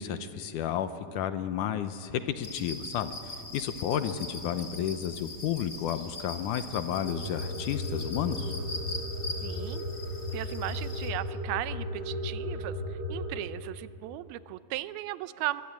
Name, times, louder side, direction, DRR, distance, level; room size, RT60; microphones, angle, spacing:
voice 1, 0.0-8.5, left 9 dB, 75° left, 10 dB, 2.0 m, -32 dB
sound 1, 2.4-11.1, left 2 dB, 25° left, 2.9 m, -41 dB
sound 2, 7.0-13.4, left 1 dB, 25° right, 8.2 m, -35 dB
voice 2, 9.4-9.8 10.3-15.6, right 15 dB, 85° right, 14 dB, 2.6 m, -36 dB
23.0 x 22.5 x 8.6 m, 2.4 s
omnidirectional pair, 4.3 m